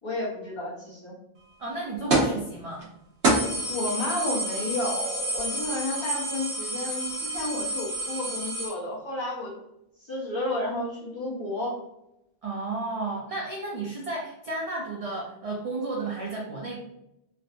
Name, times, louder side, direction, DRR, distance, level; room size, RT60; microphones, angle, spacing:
voice 1, 0.0-1.2 3.7-9.6 10.0-11.8, left 1 dB, 25° left, -9 dB, 1.1 m, -31 dB
voice 2, 1.6-2.9 12.4-16.8, right 3 dB, 50° right, -2 dB, 0.4 m, -33 dB
sound 1, 2.1-2.4 2.8-2.9 3.2-8.7, right 2 dB, 75° right, 1.1 m, -28 dB
3.3 x 2.4 x 2.4 m, 0.84 s
omnidirectional pair, 1.1 m